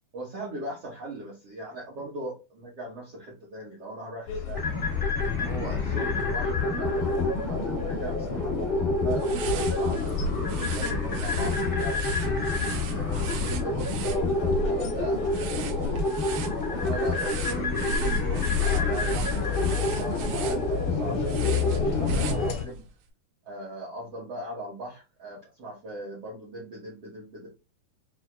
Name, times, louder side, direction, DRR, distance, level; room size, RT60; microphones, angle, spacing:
voice 1, 0.1-4.7 5.3-12.1 12.9-16.0 16.8-22.8 23.4-27.5, right 1 dB, 65° right, -4 dB, 1.5 m, -39 dB
sound 1, 4.3-22.6, left 9 dB, 80° left, 1.6 m, -33 dB
sound 2, 4.5-22.5, left 2 dB, 50° left, 0.8 m, -28 dB
sound 3, 9.2-22.9, right 2 dB, 85° right, 2.8 m, -35 dB
6.2 x 2.8 x 2.3 m, 0.29 s
omnidirectional pair, 4.5 m